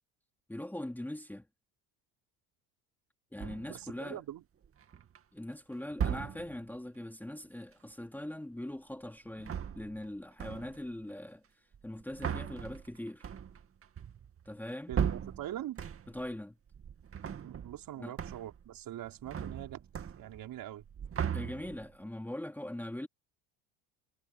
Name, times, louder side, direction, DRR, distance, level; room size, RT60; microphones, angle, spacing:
voice 1, 0.5-1.5 3.3-4.2 5.3-13.3 14.5-15.0 16.1-16.6 18.0-18.2 21.3-23.1, left 1 dB, 5° left, 2.5 m, -41 dB
sound 1, 3.4-3.9 4.6-5.2 5.9-6.7 9.3-10.1 10.4-10.9 11.7-16.3 16.7-17.9 18.2-18.7 18.9-20.5 20.8-22.0, right 8 dB, 30° right, 2.2 m, -38 dB
voice 2, 3.7-4.4 14.9-15.8 17.4-20.8, right 12 dB, 50° right, 4.9 m, -43 dB
supercardioid pair, 110°, 43 cm